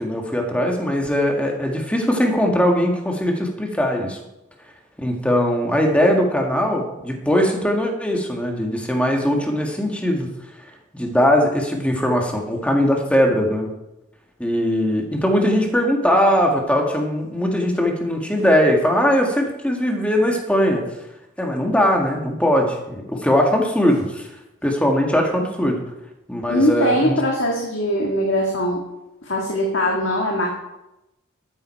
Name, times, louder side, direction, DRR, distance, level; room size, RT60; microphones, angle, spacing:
voice 1, 0.0-4.2 5.0-10.3 10.9-13.7 14.4-20.8 21.4-24.3 24.6-25.8 26.3-27.2, equal, 5° left, 1 dB, 1.9 m, -20 dB
voice 2, 26.5-28.8 29.2-30.5, equal, 65° left, -1 dB, 1.8 m, -21 dB
12.5 x 9.5 x 4.5 m, 0.91 s
head